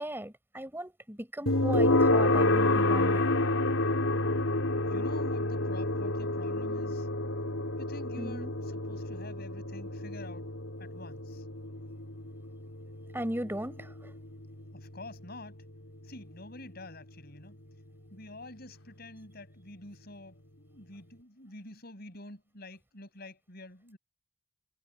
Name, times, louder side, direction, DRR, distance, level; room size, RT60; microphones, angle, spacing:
voice 1, 0.0-3.3 8.2-8.5 13.1-14.1, right 1 dB, 10° right, 5.0 m, -37 dB
sound 1, 1.5-16.4, left 2 dB, 85° left, 3.5 m, -29 dB
voice 2, 4.8-7.1 7.8-10.5 10.8-11.4 14.7-15.6 16.1-17.6 18.1-24.0, left 2 dB, 50° left, 6.5 m, -48 dB
head